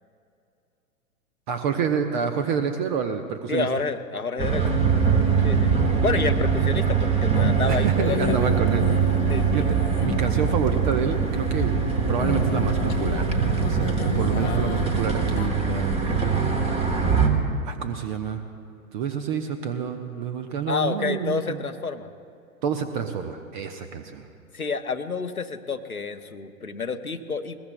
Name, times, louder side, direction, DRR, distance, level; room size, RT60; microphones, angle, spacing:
voice 1, 1.5-3.7 7.7-8.9 9.5-11.8 12.1-16.5 17.6-18.4 18.9-21.6 22.6-24.2, right 7 dB, 35° right, 7 dB, 0.9 m, -28 dB
voice 2, 3.5-4.8 5.4-5.7 6.0-8.5 9.3-9.7 14.3-14.6 20.7-22.1 24.5-27.6, left 4 dB, 85° left, 8 dB, 1.0 m, -29 dB
sound 1, 4.4-17.3, right 6 dB, 15° right, 1.2 m, -23 dB
sound 2, 7.3-11.3 11.6-15.5, left 8 dB, 30° left, 0.9 m, -33 dB
21.0 x 21.0 x 2.2 m, 2.5 s
figure-of-eight pair, 105°, 42 cm